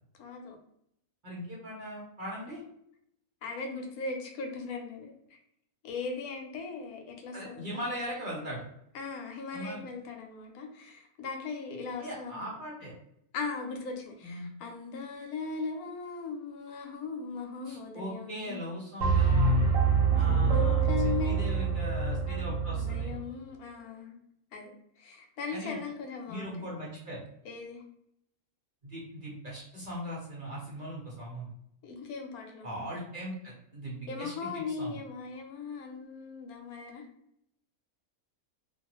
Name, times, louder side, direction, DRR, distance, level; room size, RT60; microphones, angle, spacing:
voice 1, 0.2-0.6 3.4-5.4 5.8-7.8 8.9-12.5 13.3-18.6 20.1-21.6 22.3-22.5 22.8-24.2 24.5-24.7 25.0-26.7 27.4-27.8 31.8-32.8 34.1-37.0, left 4 dB, 80° left, 3 dB, 1.1 m, -39 dB
voice 2, 1.2-2.6 7.3-8.6 9.5-9.8 12.0-12.9 14.2-14.5 17.6-19.7 20.1-23.1 25.5-25.8 26.3-27.2 28.8-31.5 32.6-35.0, equal, 40° right, -6 dB, 0.9 m, -39 dB
sound 1, 19.0-23.2, right 4 dB, 65° right, 1.0 m, -25 dB
2.6 x 2.3 x 2.9 m, 0.74 s
omnidirectional pair, 1.6 m